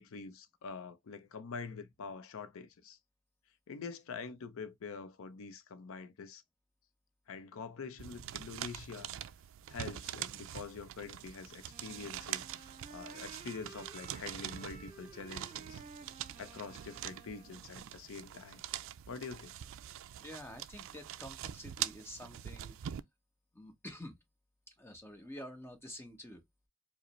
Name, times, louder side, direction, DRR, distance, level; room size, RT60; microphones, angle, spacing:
voice 1, 0.0-3.0 3.7-6.4 7.3-9.1 9.7-12.5 12.9-15.8 16.4-18.6 19.1-19.5, left 5 dB, 70° left, 0.5 m, -45 dB
sound 1, 8.0-23.0, right 11 dB, 65° right, 0.3 m, -44 dB
Wind instrument woodwind instrument, 11.7-17.9, right 4 dB, 25° right, 1.7 m, -54 dB
voice 2, 20.2-22.8 23.5-24.2 24.8-26.4, left 1 dB, 10° left, 0.9 m, -48 dB
4.9 x 2.0 x 3.0 m
head